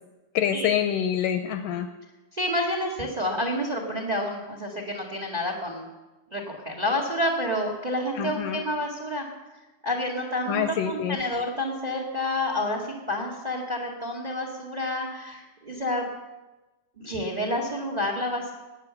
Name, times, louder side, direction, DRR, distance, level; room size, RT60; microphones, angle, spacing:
voice 1, 0.3-1.9 8.2-8.6 10.5-11.2, left 9 dB, 80° left, 8 dB, 2.0 m, -26 dB
voice 2, 2.3-5.9 6.3-9.3 9.8-16.1 17.0-18.5, left 1 dB, 35° right, 2 dB, 0.6 m, -29 dB
18.5 x 9.2 x 6.9 m, 1.1 s
omnidirectional pair, 4.4 m